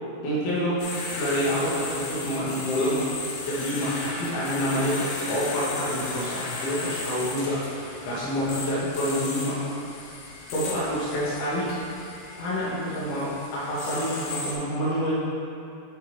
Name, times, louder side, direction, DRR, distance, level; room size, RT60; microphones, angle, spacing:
voice 1, 0.2-0.8 1.2-9.6 10.5-11.7 12.3-15.1, equal, 75° left, -9 dB, 2.4 m, -27 dB
sound 1, 0.8-14.6, left 3 dB, 90° left, 2.1 m, -35 dB
8.2 x 6.2 x 3.2 m, 2.7 s
omnidirectional pair, 5.7 m